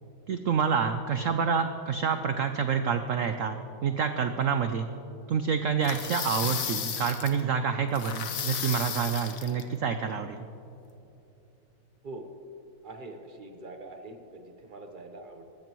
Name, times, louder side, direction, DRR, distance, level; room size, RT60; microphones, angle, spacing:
voice 1, 0.3-4.9 5.3-10.5, right 6 dB, 80° right, 8 dB, 0.7 m, -28 dB
sound 1, 5.8-7.4 7.9-9.6, left 7 dB, 55° left, 1.1 m, -34 dB
voice 2, 12.8-15.4, right 2 dB, 35° right, 5 dB, 0.9 m, -43 dB
20.5 x 14.5 x 3.1 m, 2.8 s
omnidirectional pair, 2.0 m